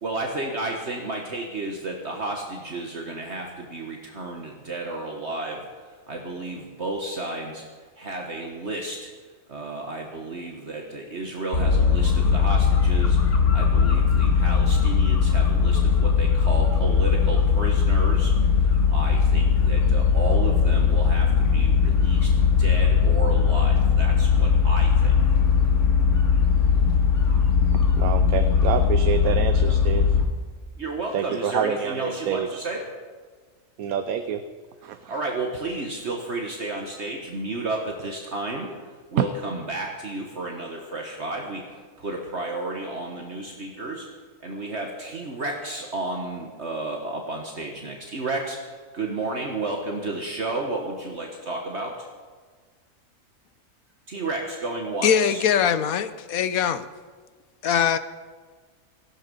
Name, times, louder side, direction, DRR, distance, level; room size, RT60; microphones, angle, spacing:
voice 1, 0.0-5.7 6.1-7.6 8.0-9.1 9.5-22.3 22.6-25.2 30.8-32.9 35.1-38.7 39.1-44.1 44.4-48.6 48.9-52.1 54.1-55.4, right 2 dB, 50° right, 1 dB, 1.7 m, -32 dB
sound 1, 11.5-30.3, left 6 dB, 60° left, 2.0 m, -19 dB
voice 2, 28.0-30.1 31.1-32.6 33.8-34.4 34.8-35.0 39.2-39.3, right 8 dB, 85° right, 8 dB, 1.2 m, -26 dB
voice 3, 55.0-56.9 57.6-58.0, left 8 dB, 80° left, 13 dB, 1.3 m, -22 dB
18.0 x 15.0 x 5.4 m, 1.5 s
omnidirectional pair, 1.5 m